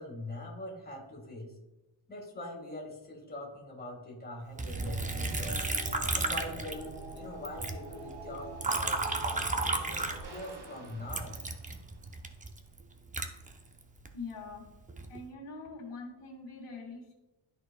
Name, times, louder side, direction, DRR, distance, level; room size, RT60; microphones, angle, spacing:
voice 1, 0.0-1.5 2.1-5.6 6.1-9.4 9.8-11.4, left 1 dB, 20° left, -2 dB, 1.8 m, -43 dB
Liquid, 4.6-7.2 7.4-10.6 11.1-14.1 14.7-15.2, right 3 dB, 15° right, 0.4 m, -33 dB
sound 1, 4.6-12.7, right 2 dB, 65° right, 1.5 m, -45 dB
voice 2, 14.1-14.7 15.1-17.1, left 3 dB, 90° left, -1 dB, 2.4 m, -43 dB
12.5 x 4.3 x 2.3 m, 1.0 s
wide cardioid pair, 140°, 50 cm